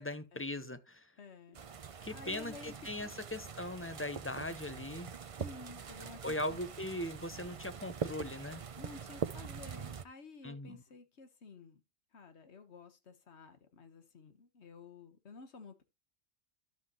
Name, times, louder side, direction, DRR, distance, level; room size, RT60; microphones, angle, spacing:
voice 1, 0.0-1.1 2.0-5.1 6.2-8.6 10.4-10.8, left 1 dB, 15° left, 0.7 m, -40 dB
voice 2, 1.2-1.6 2.1-2.7 3.0-3.1 5.2-6.6 8.8-11.8 12.1-15.8, left 4 dB, 80° left, 1.6 m, -52 dB
sound 1, 1.5-10.0, right 6 dB, 40° right, 0.5 m, -43 dB
12.0 x 7.7 x 3.0 m
omnidirectional pair, 1.1 m